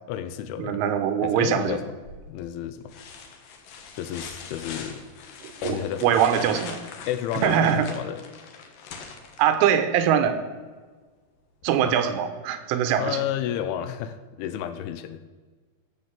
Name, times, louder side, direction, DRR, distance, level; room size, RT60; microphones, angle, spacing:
voice 1, 0.1-0.8 1.2-1.9 2.3-2.9 3.9-5.0 5.6-6.2 7.1-8.2 11.8-11.9 13.0-15.3, left 10 dB, 80° left, 11 dB, 3.0 m, -31 dB
voice 2, 0.6-1.8 5.4-6.8 7.4-7.9 9.4-10.4 11.6-13.2, right 8 dB, 85° right, 9 dB, 3.5 m, -22 dB
sound 1, 2.0-2.4 2.9-9.8 11.6-11.7, left 5 dB, 65° left, 2.4 m, -42 dB
13.5 x 7.5 x 7.4 m, 1.4 s
omnidirectional pair, 5.6 m